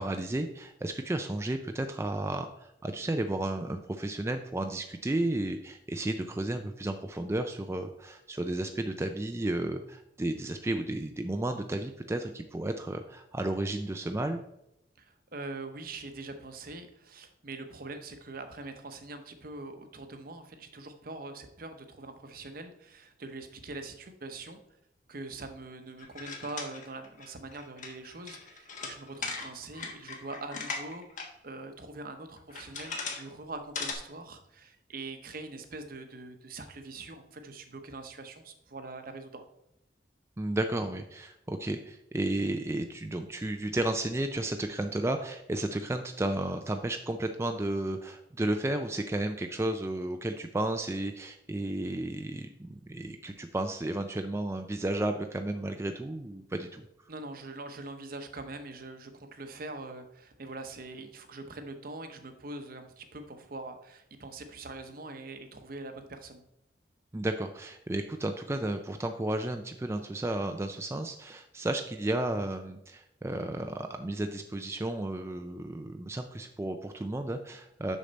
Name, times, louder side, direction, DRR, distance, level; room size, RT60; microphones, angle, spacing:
voice 1, 0.0-14.4 40.4-56.8 67.1-78.0, right 1 dB, 15° right, 6 dB, 0.4 m, -33 dB
voice 2, 15.0-24.6 25.1-39.4 57.1-66.4, right 2 dB, 55° right, 7 dB, 0.9 m, -43 dB
sound 1, 26.0-31.3 31.6-31.7 32.4-33.3 33.5-33.9, left 4 dB, 45° left, 1.3 m, -38 dB
6.6 x 6.4 x 4.1 m, 0.84 s
head